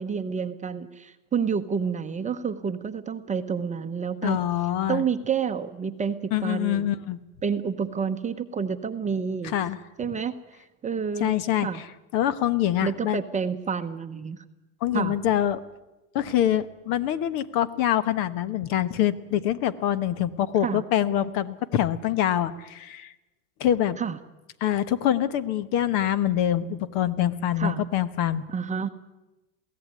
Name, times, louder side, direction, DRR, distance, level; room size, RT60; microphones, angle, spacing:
voice 1, 0.0-4.4 4.9-6.9 7.4-9.5 10.0-10.4 10.8-11.3 11.6-11.8 12.8-14.4 14.9-15.2 20.6-20.8 24.0-24.2 27.6-27.8 28.5-28.9, right 6 dB, 15° right, 7 dB, 0.9 m, -29 dB
voice 2, 4.2-5.0 6.3-7.2 9.4-9.8 11.2-11.9 12.1-13.2 14.8-15.6 16.1-23.1 23.6-24.0 24.6-28.4, left 11 dB, 55° left, 15 dB, 1.3 m, -25 dB
22.5 x 16.5 x 9.6 m, 1.0 s
supercardioid pair, 135°, 42 cm